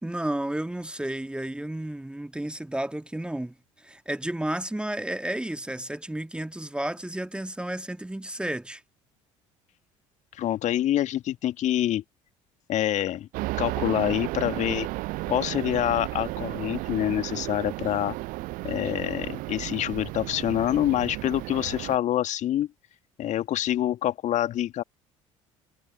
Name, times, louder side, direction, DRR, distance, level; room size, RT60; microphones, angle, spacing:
voice 1, 0.0-8.8, right 1 dB, 5° right, 1.6 m, -32 dB
voice 2, 10.3-12.0 12.7-13.3 13.6-14.9 15.3-18.2 18.6-22.7 23.2-24.8, left 12 dB, 45° left, 2.0 m, -26 dB
sound 1, 13.3-22.0, right 21 dB, 55° right, 6.6 m, -33 dB
figure-of-eight pair, 60°, 17 cm